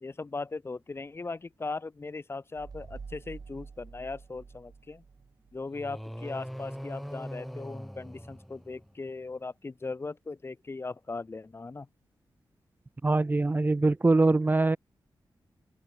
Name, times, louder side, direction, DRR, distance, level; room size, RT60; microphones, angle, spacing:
voice 1, 0.0-5.0 5.5-11.9, left 3 dB, 30° left, 0.9 m, -38 dB
sound 1, 2.6-5.9, right 5 dB, 50° right, 3.2 m, -48 dB
sound 2, 5.7-9.1, equal, ahead, 7.4 m, -41 dB
voice 2, 13.0-14.8, right 2 dB, 25° right, 0.7 m, -23 dB
open air
wide cardioid pair, 90°, 8 cm